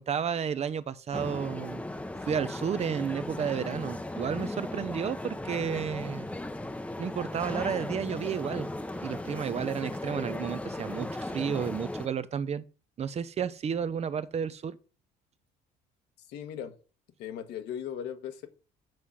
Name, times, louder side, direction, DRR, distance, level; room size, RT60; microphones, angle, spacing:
voice 1, 0.0-1.8 2.2-6.3 7.0-8.7 9.0-12.6 13.0-14.8, right 7 dB, 40° right, 0.6 m, -32 dB
sound 1, 1.1-12.1, left 1 dB, 5° left, 0.7 m, -37 dB
voice 2, 16.2-16.7 17.2-18.5, left 9 dB, 85° left, 1.4 m, -38 dB
7.7 x 4.9 x 5.6 m
cardioid pair, 110°, 17 cm